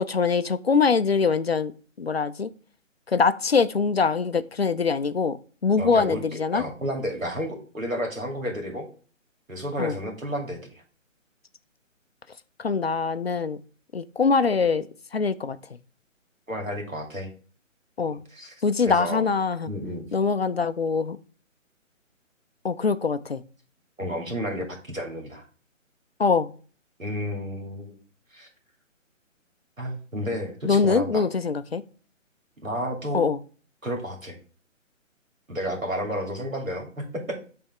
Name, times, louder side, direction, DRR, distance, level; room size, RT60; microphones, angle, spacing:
voice 1, 0.0-1.7 2.0-2.5 3.1-5.4 5.6-6.6 9.8-9.9 12.6-13.6 13.9-14.9 15.1-15.6 18.0-18.2 18.6-19.7 20.1-21.2 22.6-23.4 26.2-26.5 30.6-31.8 33.1-33.4, left 5 dB, 50° left, 0.5 m, -23 dB
voice 2, 5.8-8.9 9.5-10.6 16.5-17.3 18.1-18.5 18.8-19.2 19.7-20.1 24.0-25.4 27.0-28.0 28.3-28.5 29.8-31.3 32.6-33.2 33.8-34.4 35.5-37.4, equal, 80° right, 2.4 m, -31 dB
8.7 x 3.5 x 3.4 m
figure-of-eight pair, 145°, 40 cm